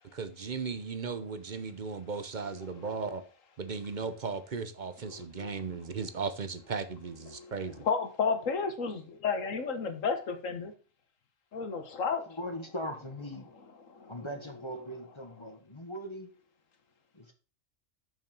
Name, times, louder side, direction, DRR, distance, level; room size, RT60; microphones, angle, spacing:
voice 1, 0.1-3.2 3.6-7.9, right 5 dB, 45° right, 0.8 m, -36 dB
voice 2, 2.6-3.0 5.1-5.5 7.3-7.5 7.8-10.7 11.5-12.4 13.9-14.1, left 5 dB, 85° left, 1.6 m, -32 dB
voice 3, 12.3-13.5 14.1-16.3 17.1-17.3, equal, 25° left, 1.1 m, -40 dB
7.2 x 6.1 x 5.2 m
omnidirectional pair, 1.3 m